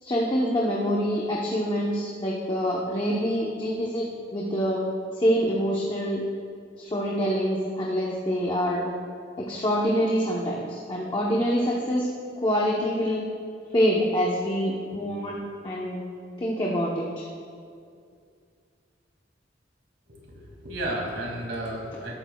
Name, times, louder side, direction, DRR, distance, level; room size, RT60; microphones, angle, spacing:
voice 1, 0.0-4.8 5.2-6.2 6.8-8.9 9.4-12.1 12.4-13.2 13.7-15.4 15.6-16.0 16.4-17.3, equal, 25° left, -3 dB, 0.9 m, -26 dB
voice 2, 20.1-22.2, right 1 dB, 65° right, -2 dB, 2.4 m, -33 dB
18.0 x 8.8 x 2.3 m, 2.3 s
head